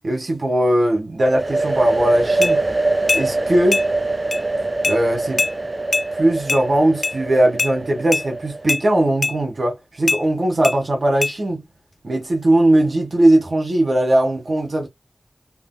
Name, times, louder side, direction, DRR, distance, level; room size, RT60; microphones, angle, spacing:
voice 1, 0.0-2.6 3.1-3.9 4.9-5.5 6.1-11.7 12.0-14.9, right 1 dB, 70° right, 1.5 m, -19 dB
sound 1, 1.3-8.9, right 2 dB, 40° right, 0.4 m, -23 dB
sound 2, 2.4-2.5 3.1-3.3 3.7-3.9 4.3-4.4 4.8-5.0 5.4-5.5 5.9-6.1 6.5-6.6 7.0-7.2 7.6-7.7 8.1-8.2 8.7-8.8 9.2-9.4 10.1-10.2 10.6-10.8 11.2-11.3, left 3 dB, 75° left, 0.4 m, -21 dB
3.3 x 2.8 x 2.2 m
wide cardioid pair, 55°, 0 cm